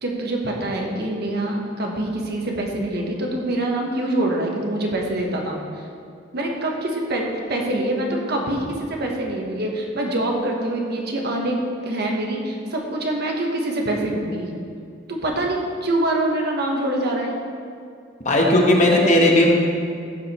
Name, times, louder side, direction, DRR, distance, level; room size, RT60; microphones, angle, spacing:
voice 1, 0.0-5.9 6.3-14.5 15.1-17.3, right 1 dB, 55° right, 0 dB, 1.3 m, -25 dB
voice 2, 18.2-19.5, left 1 dB, 40° left, -1 dB, 1.3 m, -16 dB
15.0 x 5.0 x 4.4 m, 2.4 s
head